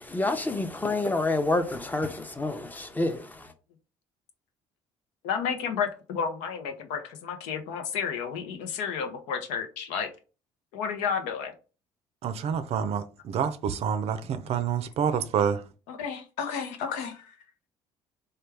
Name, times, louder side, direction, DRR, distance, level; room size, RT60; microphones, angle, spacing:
voice 1, 0.1-3.2, left 2 dB, 15° left, 0.6 m, -28 dB
voice 2, 5.2-10.1 10.7-11.5 15.9-17.2, left 6 dB, 85° left, 0.7 m, -31 dB
voice 3, 12.2-15.6, right 7 dB, 55° right, 0.5 m, -28 dB
3.3 x 2.3 x 3.3 m
supercardioid pair, 75°, 12 cm